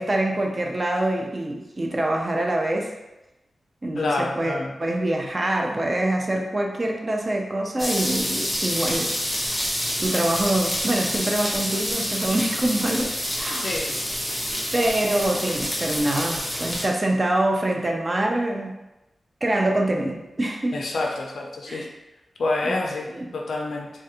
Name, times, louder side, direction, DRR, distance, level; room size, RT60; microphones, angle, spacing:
voice 1, 0.0-2.9 3.8-9.1 10.0-13.7 14.7-18.7 19.4-20.9 21.7-21.9 22.6-22.8 23.1-23.3, right 1 dB, 30° right, 2 dB, 0.3 m, -25 dB
voice 2, 4.0-4.7 13.6-14.0 20.7-21.9 22.4-23.9, left 2 dB, 75° left, 0 dB, 0.3 m, -27 dB
sound 1, 7.8-16.8, equal, 5° left, 0.7 m, -27 dB
3.2 x 2.3 x 2.8 m, 0.98 s
wide cardioid pair, 155°, 0 cm